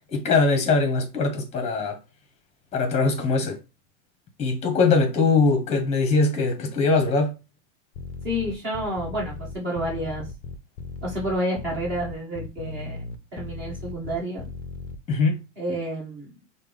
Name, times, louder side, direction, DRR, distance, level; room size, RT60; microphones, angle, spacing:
voice 1, 0.1-2.0 2.7-3.6 4.4-7.3 15.1-15.4, left 4 dB, 20° left, 0.9 m, -21 dB
sound 1, 7.9-15.0, left 4 dB, 35° left, 0.4 m, -37 dB
voice 2, 8.2-10.3 11.0-13.0 13.3-14.4 15.6-16.3, equal, 30° right, 1.6 m, -29 dB
5.3 x 2.2 x 3.3 m
supercardioid pair, 155°, 36 cm